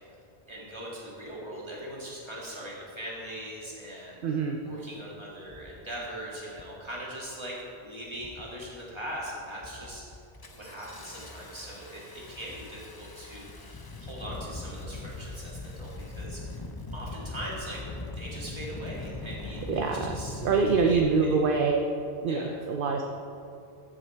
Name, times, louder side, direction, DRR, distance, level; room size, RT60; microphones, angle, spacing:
voice 1, 0.5-10.2 10.5-16.6 16.9-17.8 18.1-20.4 20.8-21.4 22.3-22.6, equal, 25° right, -5 dB, 2.4 m, -41 dB
voice 2, 4.2-4.6 19.7-20.1 20.4-21.9 22.2-23.1, right 4 dB, 55° right, 3 dB, 0.8 m, -25 dB
Engine starting, 4.7-4.8 5.5-5.8 6.5-6.8 7.2-7.7 8.2-8.7 9.1-9.3 9.6-21.0, left 2 dB, 25° left, 0.6 m, -41 dB
14.0 x 6.3 x 4.5 m, 2.6 s
omnidirectional pair, 1.1 m